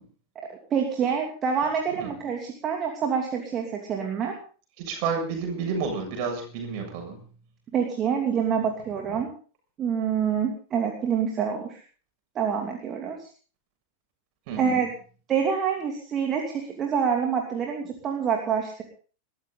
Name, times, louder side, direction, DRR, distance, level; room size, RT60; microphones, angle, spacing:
voice 1, 0.5-4.3 7.7-9.3 9.8-11.8 12.3-13.3 14.6-14.9 15.3-18.8, right 7 dB, 30° right, 2 dB, 2.9 m, -26 dB
voice 2, 4.8-7.2 14.5-14.8, right 5 dB, 45° right, 3 dB, 7.4 m, -30 dB
21.5 x 14.0 x 4.0 m, 0.39 s
figure-of-eight pair, 90°, 0 cm